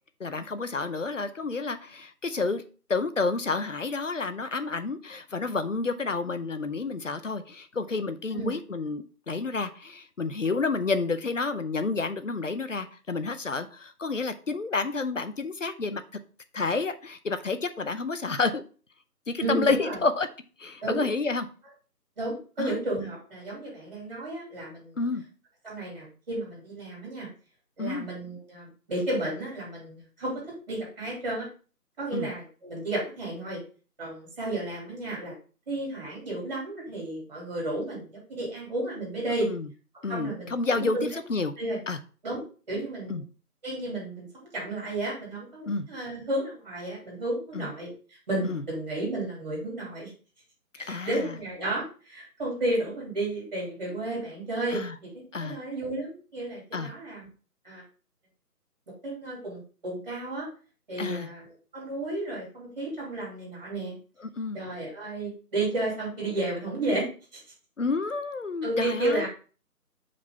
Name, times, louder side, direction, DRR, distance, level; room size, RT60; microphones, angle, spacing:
voice 1, 0.2-2.6 2.9-16.0 16.5-18.6 19.3-20.3 20.6-21.5 22.6-22.8 25.0-25.2 27.8-28.1 32.1-32.3 39.4-39.7 40.0-41.5 41.9-42.0 43.1-43.2 45.7-45.9 47.5-47.7 48.4-48.6 50.9-51.3 54.7-55.0 55.3-55.6 56.7-56.9 61.0-61.3 64.2-64.6 67.8-69.3, left 3 dB, 55° left, 11 dB, 0.7 m, -30 dB
voice 2, 19.4-20.0 20.8-21.1 22.2-25.0 25.6-27.3 27.8-31.5 32.0-33.6 34.0-35.3 35.7-39.5 40.1-41.1 41.6-41.8 42.2-42.4 42.7-43.2 43.6-47.9 48.3-50.1 50.8-57.3 57.6-57.8 59.0-60.5 60.9-64.0 64.5-67.4 68.6-69.3, right 1 dB, 25° right, -4 dB, 2.7 m, -32 dB
6.0 x 5.0 x 3.5 m, 0.38 s
figure-of-eight pair, 170°, 48 cm